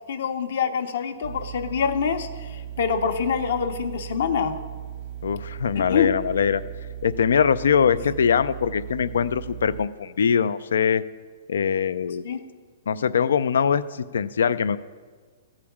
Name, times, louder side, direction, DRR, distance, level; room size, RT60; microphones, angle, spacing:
voice 1, 0.1-4.6 5.9-6.1 12.2-12.4, left 7 dB, 60° left, 6 dB, 0.9 m, -25 dB
sound 1, 1.2-9.9, right 11 dB, 25° right, 0.4 m, -37 dB
voice 2, 5.2-6.6 7.0-11.0 11.5-12.2 12.9-14.8, left 7 dB, 90° left, 14 dB, 0.4 m, -22 dB
14.5 x 5.0 x 7.2 m, 1.5 s
hypercardioid pair, 170°, 0 cm